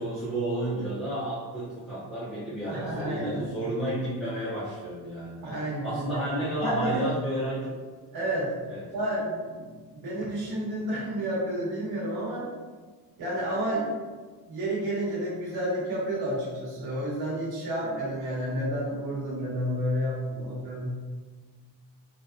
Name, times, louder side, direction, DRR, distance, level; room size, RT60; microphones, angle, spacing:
voice 1, 0.0-5.4 5.8-7.8 8.7-8.8, right 1 dB, ahead, -12 dB, 0.5 m, -31 dB
voice 2, 2.7-3.4 5.4-6.3 6.6-7.1 8.1-8.5 8.9-12.5 13.2-13.9 14.5-20.8, right 1 dB, 60° right, -7 dB, 1.2 m, -30 dB
3.8 x 2.2 x 2.5 m, 1.4 s
cardioid pair, 175°, 44 cm